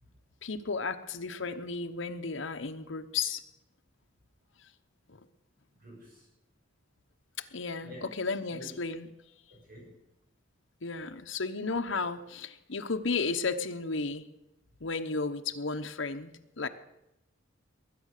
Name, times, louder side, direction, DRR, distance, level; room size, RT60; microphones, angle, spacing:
voice 1, 0.4-3.4 5.1-5.2 7.5-9.1 10.8-14.3 14.8-16.3 16.6-16.7, left 4 dB, 70° left, 5 dB, 1.0 m, -33 dB
voice 2, 5.8-6.3 7.8-8.1 8.5-8.7 9.5-10.0, right 1 dB, 45° right, -2 dB, 5.7 m, -49 dB
21.0 x 9.5 x 6.7 m, 0.88 s
head